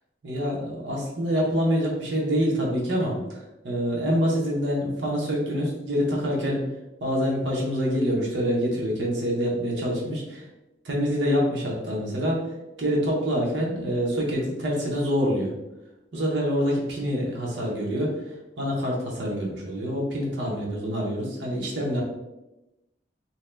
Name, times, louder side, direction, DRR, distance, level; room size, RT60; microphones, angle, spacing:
voice 1, 0.2-6.6 7.0-10.4 10.8-12.5 12.8-15.5 16.1-22.0, equal, 70° right, -3 dB, 0.8 m, -26 dB
2.7 x 2.1 x 3.2 m, 0.96 s
head